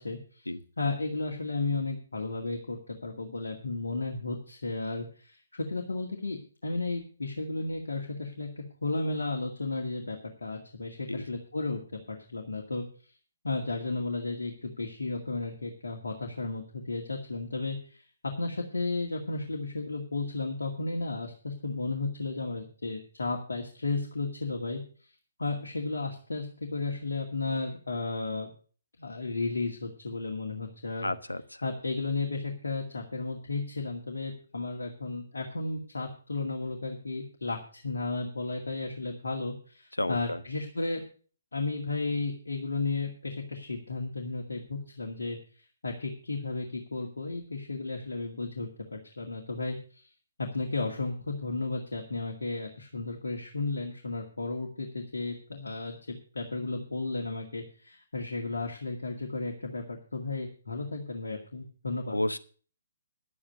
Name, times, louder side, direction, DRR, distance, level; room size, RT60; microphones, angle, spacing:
voice 1, 0.0-0.5 0.8-12.8 13.4-18.1 18.4-24.8 25.4-28.5 29.0-31.1 31.6-41.0 41.5-45.4 45.8-50.1 50.4-62.2, left 3 dB, 70° left, 1 dB, 2.1 m, -34 dB
voice 2, 31.0-31.4 40.0-40.4 62.1-62.4, left 1 dB, 85° left, 11 dB, 1.0 m, -31 dB
11.0 x 8.6 x 6.5 m, 0.41 s
figure-of-eight pair, 135°, 0 cm